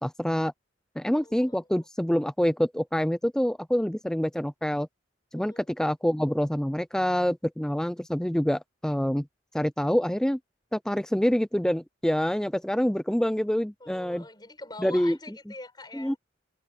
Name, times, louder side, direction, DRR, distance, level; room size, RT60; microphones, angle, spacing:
voice 1, 0.0-0.5 1.0-4.9 5.3-9.3 9.5-10.4 10.7-14.2 14.8-15.2 15.9-16.1, equal, 5° left, 0.4 m, -26 dB
voice 2, 1.1-1.8 5.3-5.7 13.8-16.2, left 2 dB, 20° left, 6.8 m, -44 dB
head